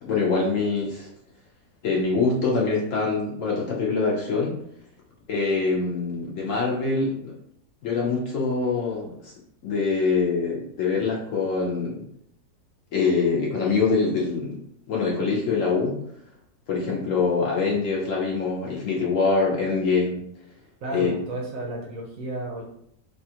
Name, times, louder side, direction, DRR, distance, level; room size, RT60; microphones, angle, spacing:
voice 1, 0.0-1.1 1.8-4.6 5.3-7.3 7.8-9.3 9.6-12.0 12.9-14.6 14.9-16.0 16.7-20.2 20.9-21.1, left 4 dB, 65° left, -3 dB, 0.8 m, -24 dB
voice 2, 20.8-22.6, right 1 dB, 65° right, -1 dB, 0.9 m, -32 dB
3.3 x 2.3 x 2.7 m, 0.71 s
omnidirectional pair, 1.7 m